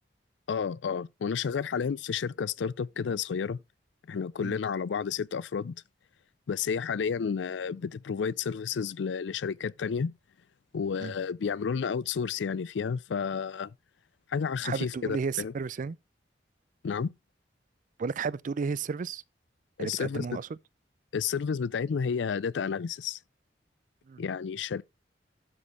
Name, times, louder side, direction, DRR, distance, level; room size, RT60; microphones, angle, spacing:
voice 1, 0.5-3.6 4.1-5.8 6.5-10.1 10.7-13.7 14.3-15.5 16.8-17.1 19.8-20.3 21.1-23.2 24.2-24.8, left 6 dB, 85° left, 0.4 m, -31 dB
voice 2, 14.6-16.0 18.0-19.2 19.8-20.5 24.1-24.2, right 5 dB, 45° right, 0.4 m, -33 dB
12.5 x 4.4 x 4.7 m
head